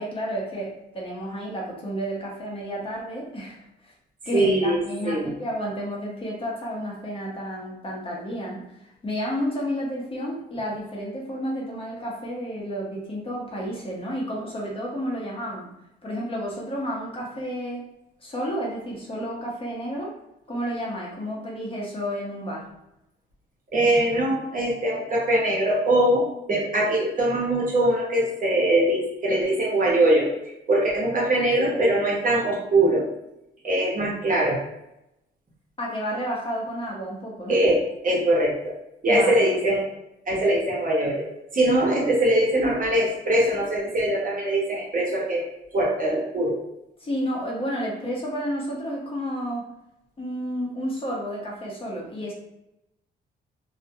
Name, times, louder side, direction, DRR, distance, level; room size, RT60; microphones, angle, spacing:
voice 1, 0.0-3.9 4.3-15.7 16.0-17.9 18.2-20.1 20.5-22.7 35.8-37.6 39.1-39.6 47.0-49.7 50.2-52.3, equal, 30° left, -3 dB, 0.7 m, -31 dB
voice 2, 4.3-5.3 23.7-30.3 30.7-33.1 33.6-34.6 37.5-38.7 39.0-39.8 40.3-41.3 41.5-45.4 45.7-46.6, right 1 dB, 45° right, -3 dB, 0.8 m, -22 dB
2.3 x 2.1 x 2.6 m, 0.87 s
cardioid pair, 90°, 20 cm